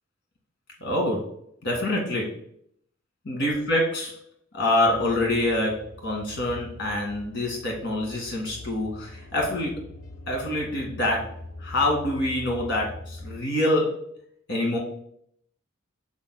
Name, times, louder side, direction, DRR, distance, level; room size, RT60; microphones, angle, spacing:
voice 1, 0.8-1.3 1.6-2.3 3.3-4.2 4.5-9.9 10.3-11.3 11.6-14.0 14.5-14.8, left 1 dB, 60° left, -1 dB, 2.0 m, -26 dB
sound 1, 4.9-13.4, left 2 dB, 90° left, 0.8 m, -43 dB
8.7 x 6.1 x 2.2 m, 0.70 s
head